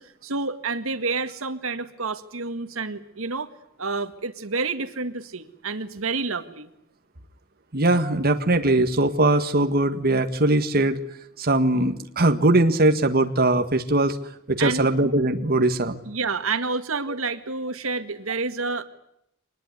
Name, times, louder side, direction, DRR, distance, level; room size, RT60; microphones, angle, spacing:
voice 1, 0.0-3.5 3.8-6.7 14.6-14.9 16.1-18.8, right 4 dB, 75° right, 9 dB, 1.9 m, -29 dB
voice 2, 7.7-11.0 11.4-14.2 14.5-16.0, right 2 dB, 45° right, 6 dB, 1.8 m, -20 dB
25.0 x 20.5 x 9.7 m, 0.75 s
head